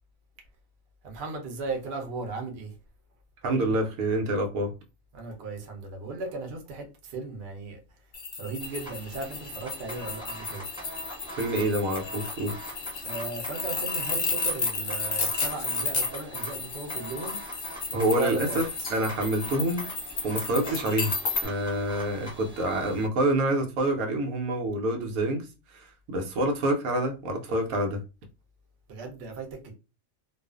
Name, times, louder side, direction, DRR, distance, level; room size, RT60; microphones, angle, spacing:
voice 1, 1.0-2.7 5.1-7.8 8.4-10.7 13.0-17.4 17.9-18.6 28.9-29.7, right 3 dB, 60° right, 0.8 m, -36 dB
voice 2, 3.4-4.7 11.3-12.5 17.9-19.9 20.2-21.1 21.4-28.0, right 1 dB, 90° right, 1.1 m, -27 dB
sound 1, 8.1-21.4, left 4 dB, 90° left, 0.3 m, -32 dB
sound 2, 8.6-23.1, equal, 5° right, 0.6 m, -42 dB
Glass, 18.8-20.1, left 3 dB, 40° left, 0.5 m, -50 dB
2.4 x 2.4 x 2.3 m
omnidirectional pair, 1.5 m